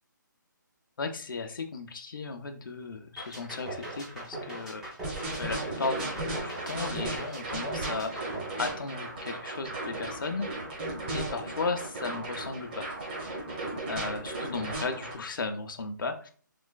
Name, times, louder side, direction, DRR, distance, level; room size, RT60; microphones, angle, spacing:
voice 1, 1.0-4.8 5.4-6.0 6.4-8.2 8.6-10.5 11.1-12.8 13.9-16.3, left 4 dB, 90° left, 5 dB, 0.5 m, -35 dB
sound 1, 3.2-9.4, right 2 dB, 5° right, 0.5 m, -40 dB
sound 2, 5.0-15.1, right 2 dB, 30° right, 0.9 m, -36 dB
3.3 x 3.0 x 2.2 m, 0.43 s
hypercardioid pair, 165°, 11 cm